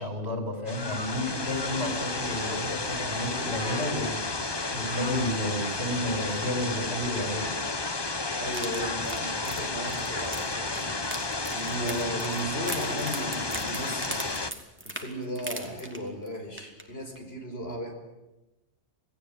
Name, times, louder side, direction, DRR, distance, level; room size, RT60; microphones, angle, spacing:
voice 1, 0.0-4.3 4.7-7.5, left 1 dB, 60° right, 5 dB, 6.2 m, -31 dB
sound 1, 0.7-14.5, left 3 dB, 20° left, 1.0 m, -32 dB
voice 2, 8.4-11.0 11.5-14.4 14.8-17.9, equal, 55° left, 3 dB, 5.6 m, -35 dB
sound 2, 8.5-16.3 16.6-16.8 17.2-17.3, right 1 dB, 10° right, 2.8 m, -40 dB
28.0 x 18.5 x 9.4 m, 1.0 s
omnidirectional pair, 1.2 m